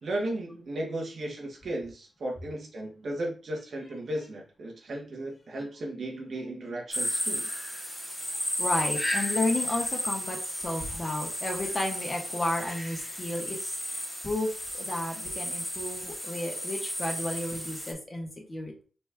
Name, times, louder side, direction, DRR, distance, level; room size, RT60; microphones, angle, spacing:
voice 1, 0.0-7.5, right 1 dB, 70° right, 0 dB, 1.5 m, -35 dB
sound 1, 6.9-17.9, equal, 10° left, 1.8 m, -33 dB
voice 2, 8.2-14.5 14.8-18.8, left 1 dB, 35° left, 1 dB, 1.6 m, -33 dB
4.4 x 3.0 x 3.5 m, 0.36 s
cardioid pair, 70°, 0 cm